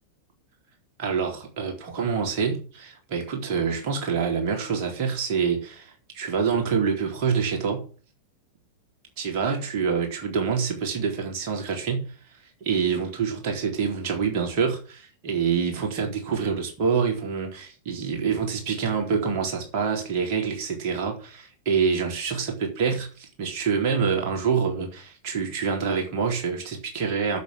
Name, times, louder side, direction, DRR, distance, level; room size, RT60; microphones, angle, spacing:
voice 1, 1.0-7.8 9.2-12.1 12.6-27.4, right 6 dB, 45° right, 2 dB, 3.9 m, -26 dB
8.0 x 8.0 x 8.3 m, 0.38 s
figure-of-eight pair, 90°, 0 cm